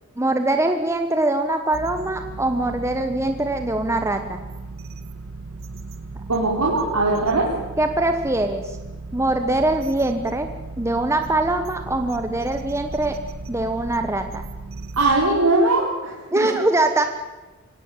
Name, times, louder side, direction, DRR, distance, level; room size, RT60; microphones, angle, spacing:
voice 1, 0.2-4.4 7.8-8.8 9.1-10.5 10.8-13.1 13.5-14.4 16.3-17.0, right 2 dB, 10° right, 6 dB, 1.1 m, -22 dB
sound 1, 1.7-15.2, right 3 dB, 65° right, 1.9 m, -36 dB
voice 2, 6.3-7.5 14.9-16.5, right 2 dB, 85° right, -3 dB, 3.9 m, -20 dB
24.0 x 17.5 x 9.1 m, 1.2 s
head